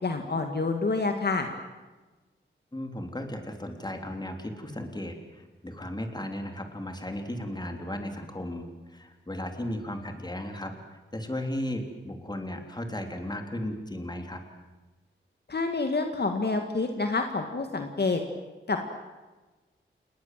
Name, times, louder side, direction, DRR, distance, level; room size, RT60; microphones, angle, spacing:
voice 1, 0.0-1.5 15.5-18.2 18.7-18.9, left 3 dB, 50° left, 5 dB, 2.2 m, -28 dB
voice 2, 2.7-10.7 11.1-14.4, left 1 dB, 20° left, 5 dB, 3.5 m, -35 dB
28.5 x 20.5 x 7.7 m, 1.2 s
wide cardioid pair, 95°, 21 cm